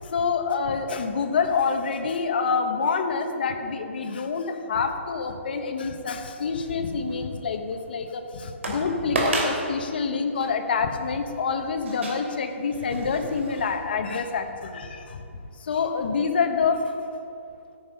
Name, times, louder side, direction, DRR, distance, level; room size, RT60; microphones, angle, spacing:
voice 1, 0.1-15.2 15.6-16.8, left 5 dB, 45° left, 5 dB, 1.2 m, -27 dB
sound 1, 6.6-7.2 7.7-7.8 8.6-8.8 9.2-9.6 10.4-10.5 11.9-13.8 14.2-14.3, right 2 dB, 65° right, 3.0 m, -30 dB
13.5 x 9.3 x 5.4 m, 2.6 s
hypercardioid pair, 175°, 7 cm